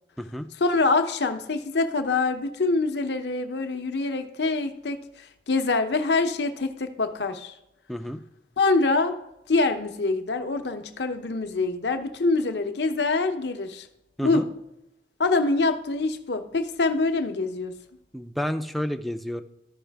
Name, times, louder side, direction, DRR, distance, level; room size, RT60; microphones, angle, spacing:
voice 1, 0.6-7.5 8.6-9.2 9.5-13.9 14.2-14.4 15.2-17.7, left 3 dB, 65° left, 7 dB, 0.8 m, -25 dB
voice 2, 7.9-8.2 14.2-14.5 18.1-19.4, equal, ahead, 6 dB, 0.4 m, -30 dB
13.5 x 5.5 x 3.4 m, 0.86 s
head